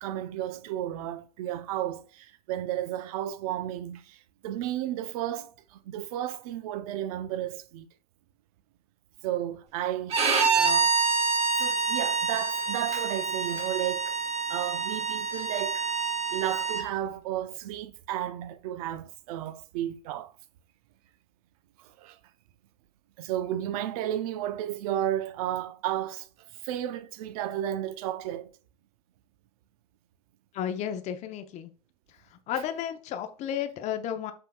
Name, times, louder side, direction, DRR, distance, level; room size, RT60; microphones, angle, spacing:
voice 1, 0.0-7.9 9.2-10.9 11.6-14.2 14.5-15.9 16.3-20.3 21.8-22.2 23.2-26.3 26.6-28.5, right 12 dB, 65° right, 0.6 m, -33 dB
Bowed string instrument, 10.1-16.8, right 4 dB, 30° right, 1.0 m, -27 dB
voice 2, 30.5-31.7 32.5-34.3, left 9 dB, 35° left, 0.6 m, -32 dB
5.7 x 3.6 x 2.2 m
supercardioid pair, 130°, 21 cm